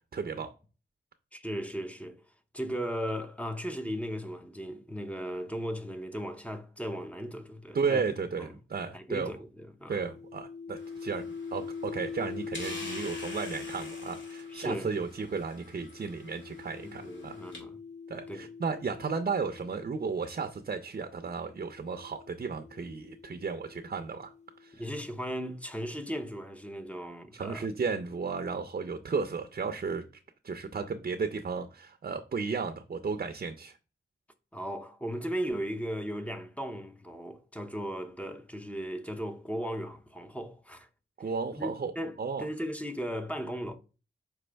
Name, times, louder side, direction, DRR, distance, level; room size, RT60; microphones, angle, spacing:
voice 1, 0.1-0.5 7.7-9.3 9.9-17.4 18.1-24.3 24.6-24.8 27.3-30.0 30.4-33.8 41.2-41.9 42.2-42.5, right 5 dB, 45° right, 0.6 m, -34 dB
voice 2, 1.3-2.2 2.5-8.0 8.4-8.6 8.9-10.0 14.5-15.1 16.8-17.8 18.3-18.5 24.8-27.7 34.5-40.9 41.5-43.8, equal, 5° left, 0.7 m, -37 dB
sound 1, 10.0-20.4 21.3-25.0, left 5 dB, 35° left, 0.8 m, -44 dB
sound 2, 10.8-17.6, left 2 dB, 65° left, 2.0 m, -47 dB
6.2 x 4.7 x 3.4 m
wide cardioid pair, 105°, 21 cm